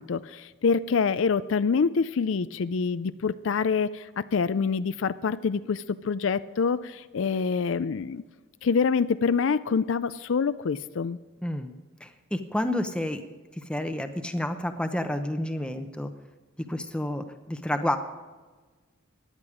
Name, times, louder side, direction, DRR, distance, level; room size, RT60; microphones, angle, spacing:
voice 1, 0.0-8.2 8.6-11.2, left 5 dB, 65° left, 14 dB, 0.4 m, -26 dB
voice 2, 11.4-11.7 12.0-13.2 13.5-16.1 16.7-18.0, left 1 dB, 5° left, 7 dB, 0.8 m, -30 dB
17.0 x 11.0 x 4.9 m, 1.3 s
head